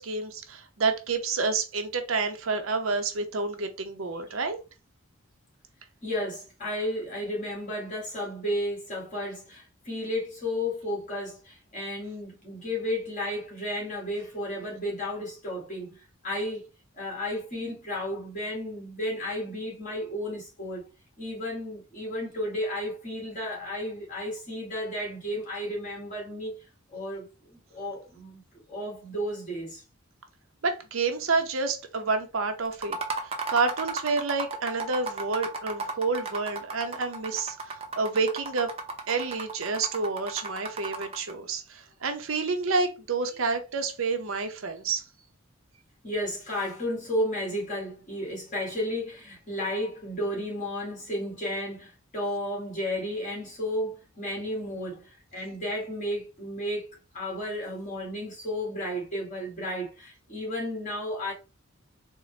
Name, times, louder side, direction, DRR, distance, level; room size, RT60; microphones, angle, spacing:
voice 1, 0.0-4.6 30.6-33.0 33.5-38.7 39.1-45.0, right 4 dB, 75° right, 0.7 m, -29 dB
voice 2, 6.0-16.7 16.9-20.9 21.2-26.6 26.9-28.4 28.7-29.8 46.0-56.9 57.1-61.3, left 1 dB, 40° left, 1.8 m, -33 dB
sound 1, 32.7-41.3, right 3 dB, 30° right, 0.6 m, -35 dB
3.8 x 2.1 x 3.2 m
head